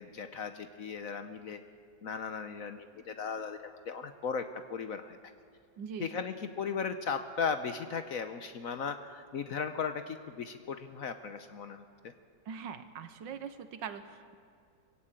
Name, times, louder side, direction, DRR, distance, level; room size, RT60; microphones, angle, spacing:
voice 1, 0.0-1.6 2.0-5.2 6.0-12.1, left 6 dB, 60° left, 9 dB, 1.0 m, -37 dB
voice 2, 5.8-6.1 12.5-14.3, right 7 dB, 75° right, 11 dB, 1.7 m, -42 dB
21.0 x 16.0 x 8.9 m, 2.2 s
omnidirectional pair, 2.0 m